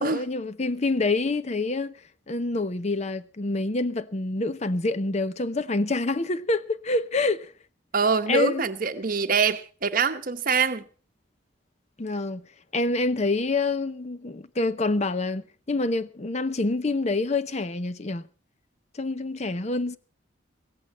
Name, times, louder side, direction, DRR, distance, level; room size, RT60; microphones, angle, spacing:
voice 1, 0.0-1.9 2.3-7.5 8.3-8.6 12.0-12.5 12.7-18.2 18.9-20.0, left 3 dB, 35° left, 0.7 m, -27 dB
voice 2, 7.9-10.8, right 5 dB, 45° right, 1.0 m, -24 dB
16.5 x 14.5 x 4.2 m
head